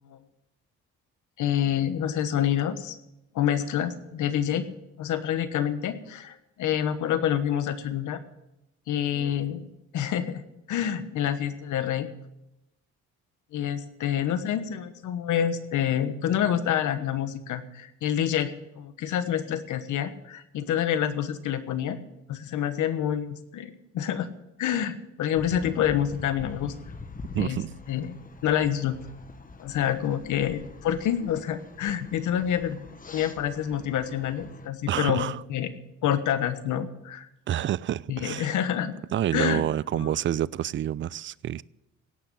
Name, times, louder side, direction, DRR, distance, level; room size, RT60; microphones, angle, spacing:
voice 1, 1.4-3.0 3.3-4.7 5.0-8.2 8.9-10.4 10.7-12.1 13.5-22.0 22.3-24.3 24.6-26.7 27.4-27.6 27.9-29.0 29.6-35.7 36.0-37.3 38.1-39.0 39.3-39.6 39.9-40.1, left 10 dB, 80° left, 1.3 m, -27 dB
sound 1, 25.3-34.7, left 4 dB, 30° left, 1.3 m, -44 dB
voice 2, 27.3-27.7 34.9-35.4 37.5-38.5 39.1-41.6, right 11 dB, 40° right, 0.4 m, -28 dB
17.0 x 6.1 x 8.5 m
cardioid pair, 90°, 30 cm